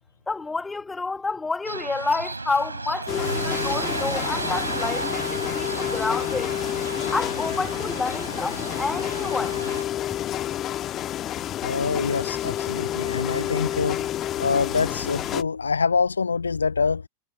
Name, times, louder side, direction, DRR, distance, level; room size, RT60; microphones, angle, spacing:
voice 1, 0.3-6.5 7.1-9.5, left 3 dB, 10° left, 1.4 m, -29 dB
sound 1, 1.6-9.8, right 3 dB, 80° right, 4.1 m, -33 dB
sound 2, 3.1-15.4, left 12 dB, 30° left, 1.3 m, -29 dB
voice 2, 11.6-14.1 14.4-17.1, left 5 dB, 75° left, 0.7 m, -25 dB
figure-of-eight pair, 90°, 0 cm